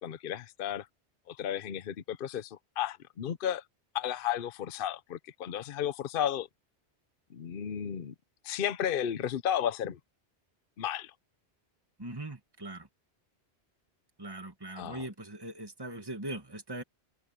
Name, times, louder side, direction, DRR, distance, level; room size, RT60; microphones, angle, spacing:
voice 1, 0.0-0.9 1.3-3.6 3.9-6.5 7.3-8.1 8.4-10.0 10.8-11.1 14.7-15.1, left 9 dB, 60° left, 0.9 m, -33 dB
voice 2, 12.0-12.9 14.2-16.8, right 1 dB, 20° right, 2.1 m, -40 dB
open air
omnidirectional pair, 1.1 m